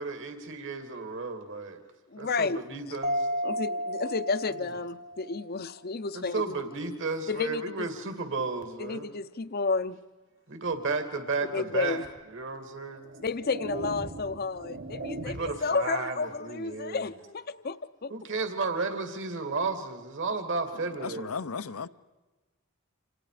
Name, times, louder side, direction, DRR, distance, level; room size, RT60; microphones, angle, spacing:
voice 1, 0.0-1.8 2.2-3.3 6.1-9.1 10.5-12.0 12.3-13.0 15.2-17.1 18.1-21.7, right 3 dB, 60° right, 2.6 m, -33 dB
voice 2, 2.1-2.6 3.4-6.5 7.3-7.9 8.8-10.0 11.4-12.0 13.2-18.1, left 4 dB, 45° left, 0.7 m, -31 dB
Mallet percussion, 3.0-5.5, equal, 30° right, 0.8 m, -32 dB
sound 1, 12.0-12.2 12.9-15.7, right 2 dB, 80° right, 3.0 m, -39 dB
voice 3, 21.0-21.9, left 5 dB, 85° left, 0.8 m, -35 dB
29.5 x 27.5 x 5.0 m
head